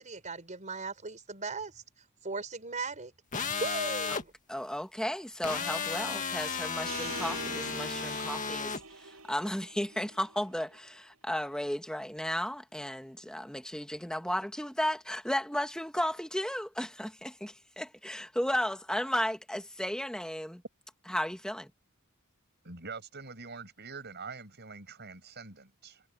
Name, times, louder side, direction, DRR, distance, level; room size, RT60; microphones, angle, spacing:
voice 1, 0.0-1.8 2.2-4.3, right 3 dB, 35° right, 5.1 m, -38 dB
sound 1, 3.3-4.2 5.4-8.8, left 5 dB, 35° left, 1.8 m, -34 dB
voice 2, 4.5-20.6 21.1-21.7, equal, 5° left, 1.6 m, -34 dB
sound 2, 6.9-10.9, right 4 dB, 75° right, 7.7 m, -45 dB
voice 3, 22.6-26.0, right 4 dB, 50° right, 7.1 m, -45 dB
head